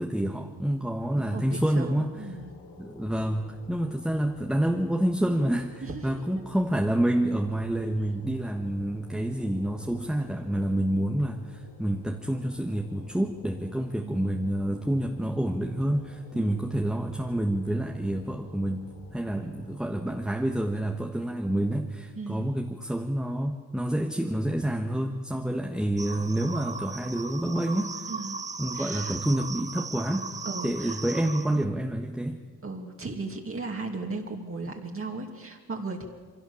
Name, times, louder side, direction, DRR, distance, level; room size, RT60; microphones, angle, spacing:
voice 1, 0.0-2.1 2.8-18.8 19.1-28.1 28.6-30.3 30.6-32.4, right 1 dB, ahead, 2 dB, 1.5 m, -28 dB
voice 2, 1.1-2.5 5.8-6.4 14.0-14.3 16.3-16.7 19.3-19.5 22.2-22.5 28.1-28.4 28.7-29.2 30.4-31.0 32.6-36.0, right 3 dB, 35° right, 1 dB, 2.8 m, -37 dB
sound 1, 2.1-20.2, left 1 dB, 90° left, 4.5 m, -50 dB
sound 2, 26.0-31.6, right 4 dB, 20° right, 0.6 m, -37 dB
22.5 x 17.0 x 7.2 m, 1.5 s
cardioid pair, 75°, 39 cm